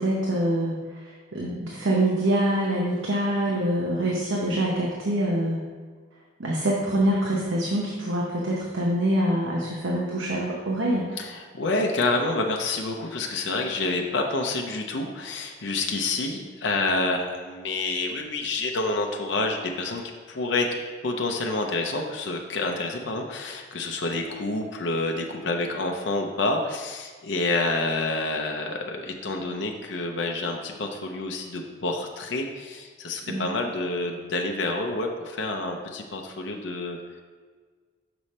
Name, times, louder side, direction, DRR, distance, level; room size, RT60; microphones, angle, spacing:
voice 1, 0.0-5.6 6.4-11.1 33.3-33.5, right 1 dB, 75° right, -3 dB, 0.9 m, -25 dB
voice 2, 11.2-20.0 20.3-20.7 21.0-37.2, left 2 dB, 65° left, 2 dB, 0.6 m, -28 dB
6.1 x 4.9 x 4.2 m, 1.5 s
head